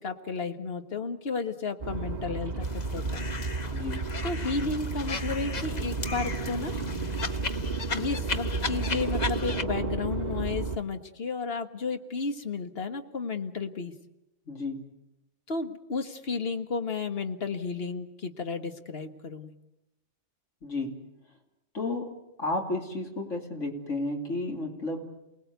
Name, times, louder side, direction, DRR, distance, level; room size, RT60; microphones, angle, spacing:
voice 1, 0.0-3.3 4.2-6.7 7.9-13.9 15.5-19.5, left 4 dB, 55° left, 7 dB, 1.7 m, -33 dB
sound 1, 1.8-10.8, right 3 dB, 35° right, 1.7 m, -32 dB
sound 2, 2.6-9.6, left 4 dB, 40° left, 1.0 m, -37 dB
voice 2, 3.7-4.0 14.5-14.9 20.6-21.0 21.7-22.1 22.4-25.0, left 2 dB, 80° left, 2 dB, 3.1 m, -32 dB
28.5 x 19.5 x 8.2 m, 0.93 s
omnidirectional pair, 1.3 m